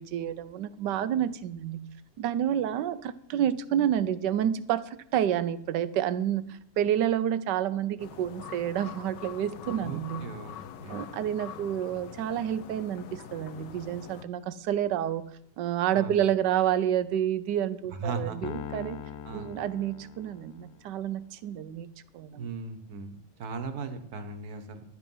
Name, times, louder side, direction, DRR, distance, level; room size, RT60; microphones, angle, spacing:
voice 1, 0.0-1.9 2.2-10.3 10.9-15.3 15.6-19.0 19.3-21.9 22.1-22.5, right 10 dB, 80° right, 15 dB, 1.3 m, -29 dB
sound 1, 8.0-14.2, left 9 dB, 85° left, 1.4 m, -44 dB
voice 2, 9.8-11.0 15.9-16.2 18.0-18.4 19.2-19.5 22.3-24.8, right 4 dB, 60° right, 9 dB, 1.6 m, -37 dB
Piano, 18.4-20.9, left 8 dB, 70° left, 1.0 m, -41 dB
11.5 x 10.0 x 5.5 m, 0.70 s
omnidirectional pair, 1.8 m